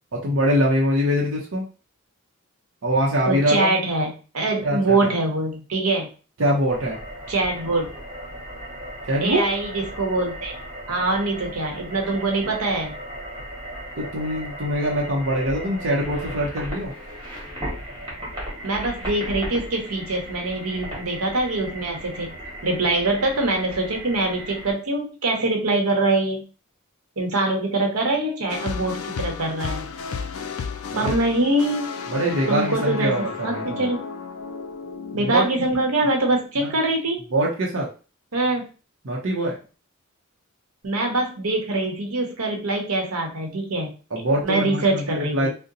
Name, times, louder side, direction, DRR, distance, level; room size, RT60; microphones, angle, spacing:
voice 1, 0.1-1.6 2.8-3.7 4.6-5.1 6.4-7.0 9.1-9.4 14.0-16.9 30.9-31.1 32.1-33.9 35.1-35.4 36.6-36.8 37.3-37.9 39.0-39.6 44.1-45.5, equal, 60° right, -3 dB, 0.7 m, -23 dB
voice 2, 3.3-6.1 7.3-7.9 9.2-10.5 10.9-12.9 18.6-22.3 22.6-26.4 27.2-29.9 30.9-31.9 32.5-34.0 35.1-37.2 38.3-38.6 40.8-43.9 44.4-45.5, right 2 dB, 85° right, 2 dB, 0.9 m, -24 dB
sound 1, 6.7-24.7, equal, 20° right, 1.3 m, -36 dB
sound 2, 28.5-36.7, left 5 dB, 80° left, 0.4 m, -33 dB
2.7 x 2.1 x 3.8 m, 0.35 s
head